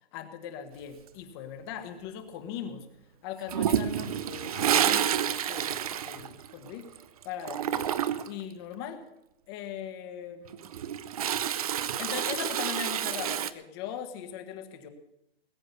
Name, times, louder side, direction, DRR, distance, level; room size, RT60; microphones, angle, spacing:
voice 1, 0.1-2.9 3.2-6.8 7.2-7.9 8.2-9.0 9.5-10.6 12.0-14.9, left 8 dB, 25° left, 8 dB, 1.4 m, -39 dB
Toilet flush, 3.5-7.0 7.2-8.4 10.5-13.5, right 10 dB, 35° right, 0.7 m, -29 dB
20.0 x 8.6 x 6.8 m, 0.84 s
hypercardioid pair, 160°, 32 cm